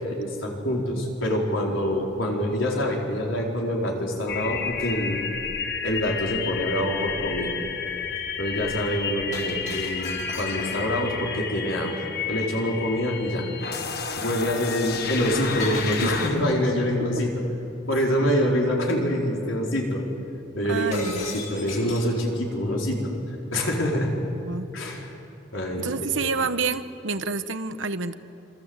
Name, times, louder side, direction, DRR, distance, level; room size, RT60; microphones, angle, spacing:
voice 1, 0.0-5.2 5.8-7.6 8.4-13.5 14.2-17.3 17.9-20.0 20.5-23.1 23.5-24.1 24.7-25.1 25.5-25.9 26.2-26.3, equal, 85° left, -1 dB, 4.7 m, -26 dB
sound 1, 4.3-16.3, left 6 dB, 50° left, 1.6 m, -31 dB
Shatter, 9.3-11.0 15.6-16.6 20.9-22.2, left 3 dB, 35° left, 4.4 m, -37 dB
voice 2, 20.7-21.3 24.5-24.7 25.8-28.1, right 4 dB, 75° right, 11 dB, 1.1 m, -28 dB
27.0 x 25.5 x 8.1 m, 2.9 s
head